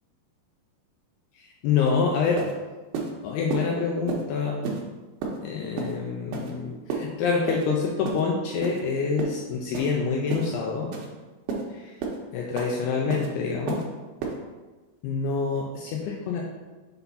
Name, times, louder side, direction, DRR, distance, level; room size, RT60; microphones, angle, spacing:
voice 1, 1.4-2.4 3.2-4.6 5.4-10.9 11.7-11.9 12.3-13.8 15.0-16.4, left 5 dB, 80° left, -1 dB, 2.5 m, -26 dB
sound 1, 1.9-2.0 2.4-2.5 2.9-3.1 3.5-3.6 4.1-4.2 4.6-4.8 5.2-5.4 5.8-5.9 6.3-6.5 6.9-7.0 7.5-7.6 8.0-8.2 8.6-8.8 9.2-9.4 9.7-9.9 10.3-10.5 10.9-11.1 11.5-11.6 12.0-12.2 12.6-12.7 13.1-13.3 13.7-13.8 14.2-14.3, right 4 dB, 75° right, 2.5 m, -30 dB
6.7 x 4.1 x 4.0 m, 1.2 s
omnidirectional pair, 5.1 m